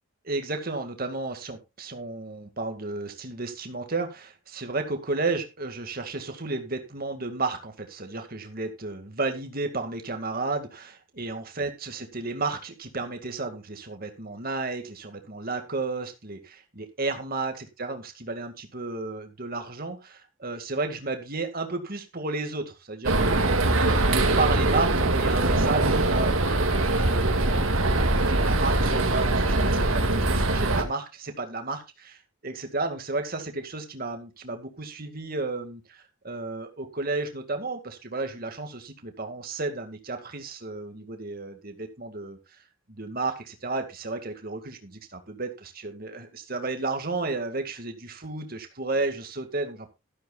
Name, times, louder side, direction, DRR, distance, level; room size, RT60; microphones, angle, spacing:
voice 1, 0.2-23.7 24.1-27.7 28.3-42.4 42.9-49.9, right 3 dB, 45° right, 6 dB, 2.1 m, -33 dB
sound 1, 23.0-30.8, right 2 dB, 85° right, 2.1 m, -22 dB
13.0 x 12.5 x 2.4 m, 0.25 s
head